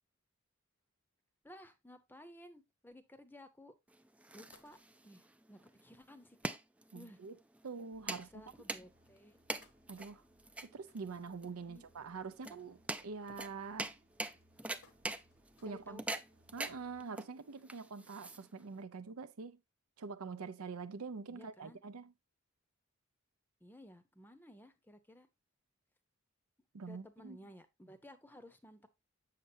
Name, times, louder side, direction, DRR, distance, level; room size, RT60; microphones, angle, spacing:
voice 1, 1.4-3.7 4.3-4.8 5.0-6.6 6.9-7.2 8.1-9.4 11.7-11.8 15.6-16.0 21.3-21.8 23.6-25.3 26.9-28.9, left 1 dB, 10° left, 0.7 m, -56 dB
sound 1, 3.9-18.8, right 2 dB, 5° right, 0.3 m, -44 dB
sound 2, 4.5-5.3 5.9-6.0 6.3-6.4 6.7-6.9 7.6-7.7 8.2-8.3 9.0-11.9 12.3-12.6 12.9-13.3 14.0-16.0 16.4-16.5 17.7-17.8, left 4 dB, 75° left, 1.1 m, -69 dB
voice 2, 6.9-7.4 7.6-8.4 9.9-10.2 10.6-13.9 15.6-16.0 16.5-19.6 20.0-22.1 26.7-27.4, right 4 dB, 85° right, 0.6 m, -45 dB
sound 3, 7.9-17.0, right 1 dB, 45° right, 1.0 m, -71 dB
7.4 x 6.7 x 2.7 m
head